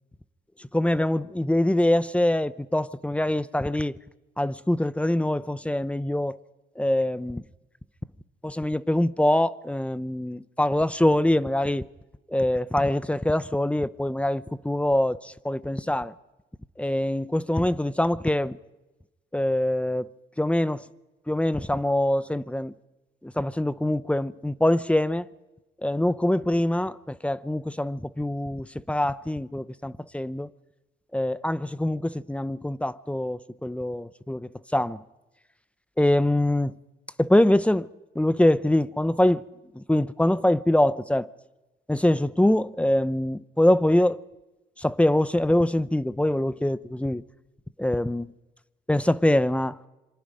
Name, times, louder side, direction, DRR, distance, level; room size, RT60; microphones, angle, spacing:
voice 1, 0.7-4.0 4.4-6.4 6.8-7.4 8.4-11.9 12.3-16.1 16.8-18.6 19.3-20.1 20.4-20.8 21.3-22.7 23.2-25.3 25.8-30.5 31.1-35.0 36.0-36.7 37.2-37.9 38.1-39.4 39.7-41.3 41.9-44.2 44.8-47.2 47.8-48.3 48.9-49.8, left 1 dB, 5° left, 0.7 m, -24 dB
26.5 x 25.0 x 5.2 m
cardioid pair, 90°, 20 cm